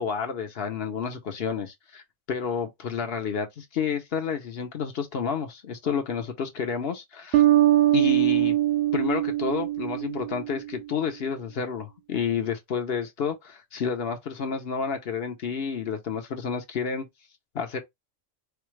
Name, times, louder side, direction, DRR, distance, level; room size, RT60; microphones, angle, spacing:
voice 1, 0.0-2.0 2.3-7.4 7.9-8.6 8.9-17.0 17.5-17.8, left 6 dB, 55° left, 0.9 m, -30 dB
sound 1, 7.3-10.7, right 14 dB, 65° right, 0.7 m, -22 dB
4.3 x 2.3 x 3.1 m
omnidirectional pair, 1.3 m